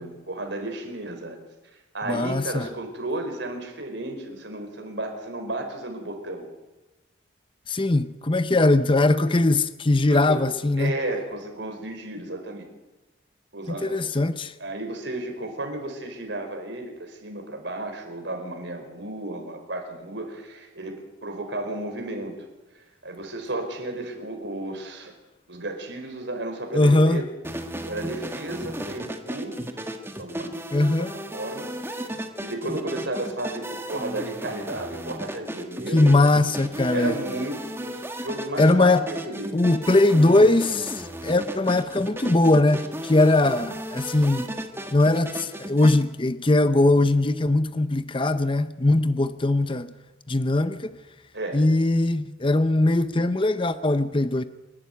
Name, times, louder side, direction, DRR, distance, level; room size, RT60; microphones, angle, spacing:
voice 1, 0.0-1.4 1.9-6.5 10.1-10.4 10.8-12.7 13.5-14.1 14.6-21.0 21.2-22.5 22.7-25.1 25.5-27.2 27.8-29.7 30.2-31.1 31.3-32.0 32.4-36.2 36.9-39.6 51.3-51.6, right 2 dB, 65° right, 4.7 m, -33 dB
voice 2, 2.1-2.7 7.7-11.0 13.8-14.5 26.7-27.2 30.7-31.1 35.9-37.1 38.6-39.1 39.5-44.5 44.9-49.9 50.3-50.9 51.5-54.4, left 2 dB, 25° left, 0.7 m, -20 dB
sound 1, 27.4-46.0, right 1 dB, 10° right, 1.6 m, -35 dB
27.5 x 12.0 x 9.3 m
head